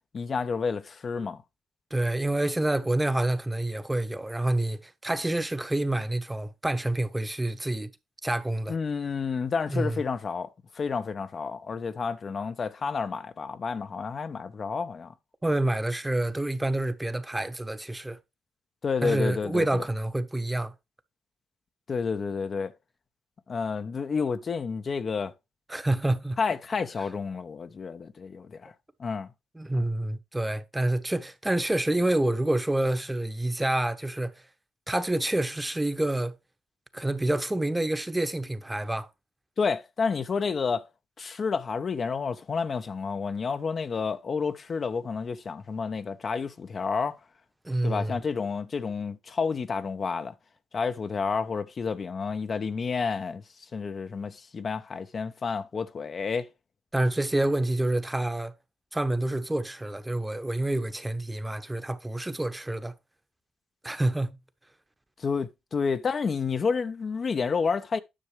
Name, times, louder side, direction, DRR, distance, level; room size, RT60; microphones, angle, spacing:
voice 1, 0.1-1.4 8.7-15.1 18.8-19.8 21.9-22.7 23.5-25.3 26.4-28.7 29.0-29.3 29.7-29.9 39.6-40.9 41.2-47.2 47.8-50.3 50.7-53.4 53.7-56.5 65.2-68.0, left 5 dB, 45° left, 0.7 m, -30 dB
voice 2, 1.9-7.9 8.2-8.7 9.7-10.0 15.4-18.2 19.0-20.7 25.7-26.4 29.5-34.3 34.9-36.3 36.9-39.1 47.6-48.2 56.9-58.5 58.9-62.9 63.8-64.3, right 1 dB, 15° right, 1.0 m, -27 dB
10.0 x 6.3 x 3.3 m
hypercardioid pair, 50°, 0 cm